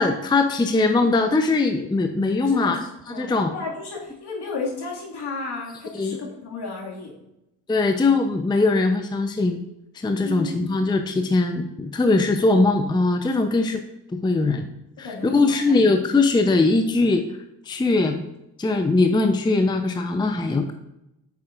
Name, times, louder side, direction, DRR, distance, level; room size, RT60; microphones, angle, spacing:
voice 1, 0.0-2.8 3.2-3.5 6.0-6.2 7.7-9.6 9.9-13.8 14.1-14.7 15.0-17.2 17.7-18.2 18.6-20.7, left 3 dB, 10° left, 6 dB, 0.6 m, -21 dB
voice 2, 2.4-2.8 3.1-7.1 10.2-10.6 15.0-15.8, left 4 dB, 55° left, -2 dB, 2.2 m, -33 dB
8.6 x 6.0 x 2.5 m, 0.87 s
hypercardioid pair, 45°, 47 cm